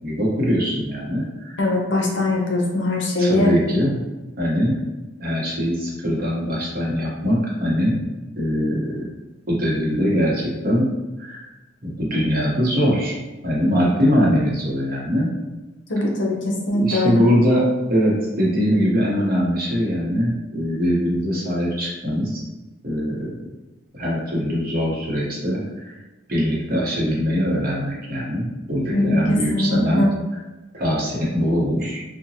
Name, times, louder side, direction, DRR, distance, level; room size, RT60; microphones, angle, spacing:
voice 1, 0.0-1.6 3.2-4.0 4.4-4.8 5.2-8.0 8.4-9.0 9.5-10.9 11.2-11.4 11.8-13.2 13.4-15.3 16.8-22.4 22.8-23.3 23.9-25.9 26.3-30.0 30.7-32.0, equal, 50° right, -5 dB, 0.8 m, -22 dB
voice 2, 1.6-3.5 15.9-17.2 28.9-30.1, left 1 dB, 70° left, -1 dB, 0.6 m, -21 dB
2.8 x 2.1 x 2.7 m, 1.1 s
head